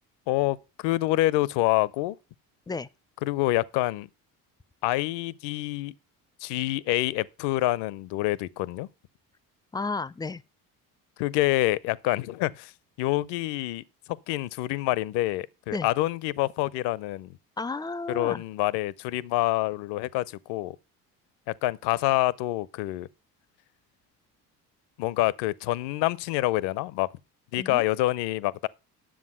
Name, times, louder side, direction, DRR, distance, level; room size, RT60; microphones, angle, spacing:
voice 1, 0.3-0.6 0.8-2.2 3.2-4.1 4.8-5.9 6.4-8.9 11.2-12.7 13.0-13.8 14.3-17.3 18.1-20.8 21.6-23.1 25.0-27.1 27.5-28.7, left 17 dB, 60° left, 0.7 m, -26 dB
voice 2, 9.7-10.4 15.7-15.9 17.6-18.4 27.6-27.9, left 3 dB, 10° left, 0.4 m, -32 dB
10.0 x 7.2 x 5.5 m
hypercardioid pair, 55°, 47 cm